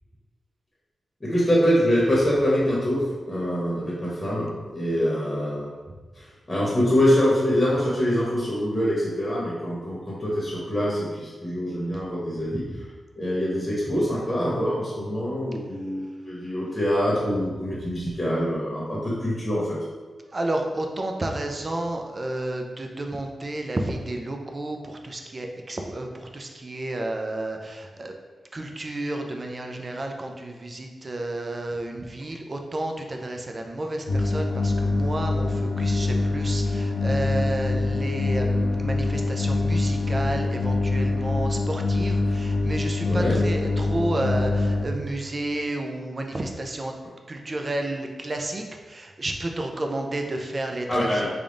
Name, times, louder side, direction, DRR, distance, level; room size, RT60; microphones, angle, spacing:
voice 1, 1.2-5.7 6.5-12.6 13.2-19.8 43.0-43.4 50.9-51.3, equal, 20° left, -6 dB, 1.0 m, -24 dB
voice 2, 20.3-28.1 28.5-46.9 47.3-51.3, right 1 dB, 35° right, 3 dB, 0.4 m, -31 dB
sound 1, 34.1-44.9, left 2 dB, 55° left, 0.6 m, -24 dB
3.5 x 2.3 x 3.8 m, 1.3 s
cardioid pair, 85°, 0 cm